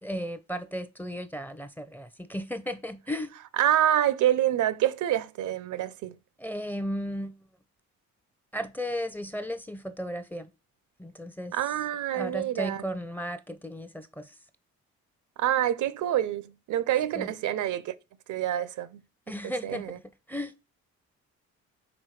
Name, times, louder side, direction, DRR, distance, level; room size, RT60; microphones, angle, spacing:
voice 1, 0.0-3.3 6.4-7.3 8.5-10.5 11.0-11.5 12.1-14.3 17.1-17.3 19.3-20.0 20.3-20.5, equal, 5° left, 0.6 m, -35 dB
voice 2, 3.6-6.2 11.5-12.8 15.4-17.9 18.3-19.0 19.4-20.0, right 12 dB, 75° right, 0.6 m, -27 dB
5.1 x 3.8 x 4.8 m
cardioid pair, 90°, 30 cm